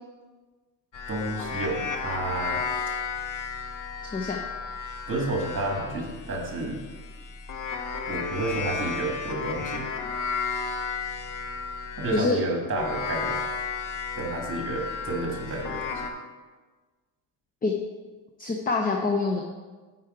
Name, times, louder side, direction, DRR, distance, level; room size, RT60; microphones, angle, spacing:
sound 1, 0.9-12.3 12.8-16.1, left 5 dB, 45° left, 0.9 m, -33 dB
voice 1, 1.1-2.6 5.1-6.8 8.1-9.8 12.0-13.4 14.1-16.1, right 2 dB, 25° right, 1 dB, 1.6 m, -30 dB
voice 2, 18.4-19.4, left 4 dB, 20° left, 2 dB, 0.6 m, -25 dB
8.3 x 4.6 x 4.9 m, 1.3 s
cardioid pair, 125°, 45 cm